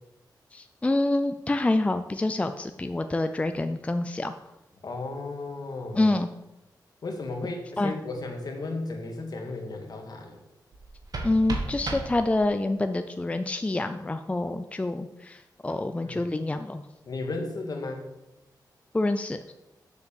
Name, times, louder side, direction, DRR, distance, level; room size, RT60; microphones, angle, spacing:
voice 1, 0.5-4.3 5.9-6.3 7.8-7.9 11.2-16.8 18.9-19.4, left 2 dB, 15° left, 8 dB, 0.4 m, -27 dB
voice 2, 4.8-6.1 7.0-10.4 16.0-16.2 17.1-18.1, left 3 dB, 60° left, 3 dB, 1.8 m, -34 dB
sound 1, 10.7-12.7, right 2 dB, 55° right, 1.5 m, -35 dB
6.9 x 6.8 x 7.0 m, 0.97 s
wide cardioid pair, 125°, 8 cm